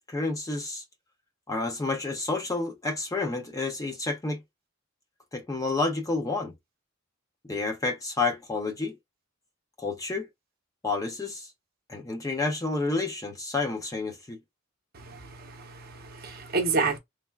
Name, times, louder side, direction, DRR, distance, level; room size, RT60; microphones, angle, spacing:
voice 1, 0.1-0.8 1.5-4.4 5.3-6.5 7.5-8.9 9.8-10.3 10.8-11.5 11.9-14.4, left 3 dB, 15° left, 0.5 m, -29 dB
voice 2, 14.9-17.0, right 4 dB, 50° right, 0.7 m, -30 dB
3.3 x 2.1 x 2.3 m
head